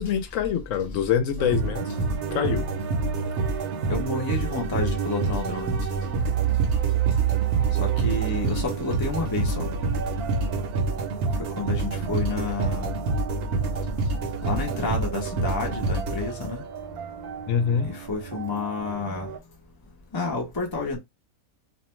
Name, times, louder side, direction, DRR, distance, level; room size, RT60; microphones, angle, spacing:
voice 1, 0.0-2.7 17.5-17.9, left 8 dB, 65° left, 0.9 m, -25 dB
sound 1, 1.4-19.4, right 9 dB, 80° right, 1.1 m, -31 dB
sound 2, 1.5-16.8, right 3 dB, 60° right, 0.8 m, -28 dB
voice 2, 3.9-5.8 7.7-9.7 11.6-12.9 14.4-16.6 17.8-19.3 20.1-21.0, left 3 dB, 35° left, 0.3 m, -30 dB
2.5 x 2.1 x 3.0 m
omnidirectional pair, 1.6 m